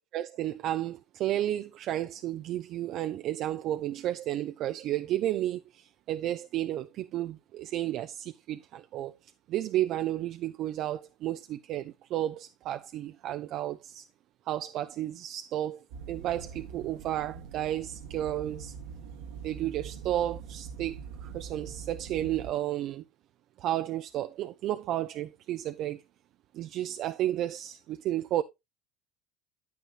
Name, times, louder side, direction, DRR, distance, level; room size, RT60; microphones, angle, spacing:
voice 1, 0.1-14.1 14.5-18.7 19.4-23.0 23.6-26.0 26.5-28.4, right 13 dB, 55° right, 0.5 m, -32 dB
sound 1, 15.9-22.5, right 6 dB, 75° right, 1.3 m, -43 dB
9.3 x 9.0 x 2.4 m
hypercardioid pair, 85°, 0 cm